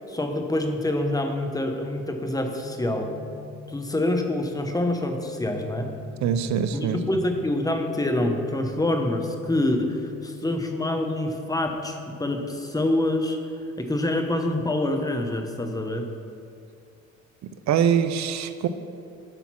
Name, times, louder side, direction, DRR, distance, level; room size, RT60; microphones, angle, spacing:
voice 1, 0.1-3.2 3.7-5.9 6.7-13.4 13.8-16.1, left 1 dB, 10° left, 4 dB, 0.9 m, -26 dB
sound 1, 2.6-12.6, left 5 dB, 80° left, 1.5 m, -43 dB
voice 2, 6.2-7.0 17.7-18.7, right 8 dB, 65° right, 11 dB, 0.6 m, -23 dB
11.0 x 4.2 x 5.9 m, 2.5 s
cardioid pair, 90°, 30 cm